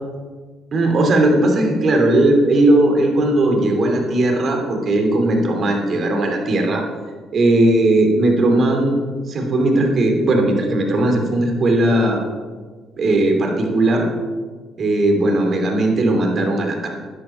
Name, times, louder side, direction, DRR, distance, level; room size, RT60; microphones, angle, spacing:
voice 1, 0.7-6.8 7.3-9.0 9.3-12.2 13.0-14.1 14.8-16.9, right 1 dB, 50° right, 2 dB, 2.6 m, -17 dB
12.0 x 10.5 x 4.4 m, 1.5 s
supercardioid pair, 75°, 0 cm